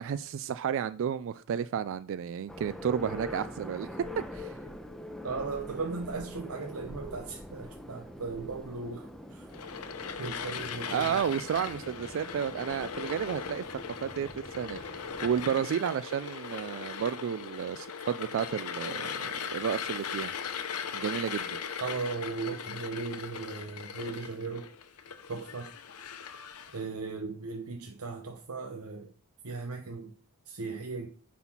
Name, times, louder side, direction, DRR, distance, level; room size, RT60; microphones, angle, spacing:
voice 1, 0.0-3.9 4.2-4.6 10.9-20.3 20.9-21.6, right 8 dB, 60° right, 0.3 m, -32 dB
sound 1, 2.5-15.6, left 1 dB, ahead, 0.8 m, -44 dB
voice 2, 5.2-9.5 10.2-11.2 21.8-24.7 25.3-25.7 26.7-29.1 29.4-30.1 30.5-31.1, right 4 dB, 75° right, 0.9 m, -37 dB
sound 2, 9.5-26.8, left 6 dB, 80° left, 0.8 m, -39 dB
9.5 x 4.2 x 5.9 m
head